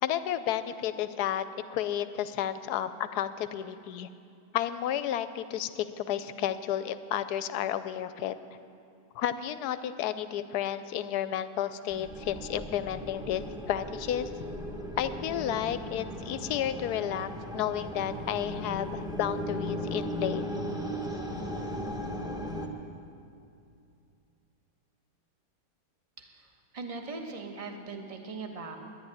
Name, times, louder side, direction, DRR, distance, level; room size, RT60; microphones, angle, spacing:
voice 1, 0.0-1.4 1.7-4.1 4.5-8.4 9.2-14.3 15.0-20.5, left 10 dB, 75° left, 13 dB, 1.1 m, -32 dB
sound 1, 11.9-22.7, equal, 5° right, 0.7 m, -37 dB
voice 2, 26.2-26.5 26.7-28.8, right 3 dB, 25° right, 3 dB, 1.0 m, -40 dB
10.5 x 10.0 x 9.8 m, 2.6 s
omnidirectional pair, 1.8 m